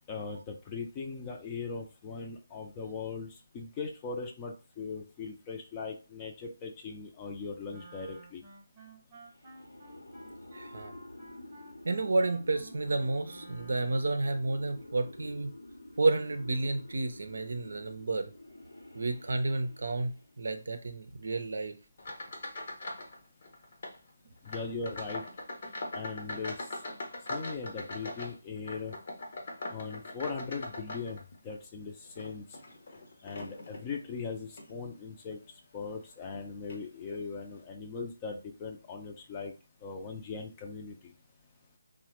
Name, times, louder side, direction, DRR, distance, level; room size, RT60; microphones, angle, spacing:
voice 1, 0.1-3.3 3.5-8.4 24.4-25.2 25.9-26.6 27.3-28.9 29.7-31.2 31.4-32.4 33.2-35.4 35.7-39.5 39.8-41.1, left 4 dB, 20° left, 2 dB, 0.5 m, -39 dB
Wind instrument woodwind instrument, 7.7-14.3, right 2 dB, 25° right, 0.9 m, -53 dB
sound 1, 9.3-20.4, left 1 dB, 90° left, 0.8 m, -50 dB
voice 2, 10.5-10.9 11.8-15.5 16.0-18.3 18.9-21.7, right 3 dB, 65° right, 8 dB, 0.5 m, -31 dB
sound 2, 22.0-23.2 23.4-24.0 24.4-31.5 32.0-33.9 34.5-34.7 35.3-35.4 36.3-36.4 36.7-36.8, left 2 dB, 55° left, 0.7 m, -41 dB
3.1 x 2.1 x 3.0 m, 0.33 s
figure-of-eight pair, 150°, 0 cm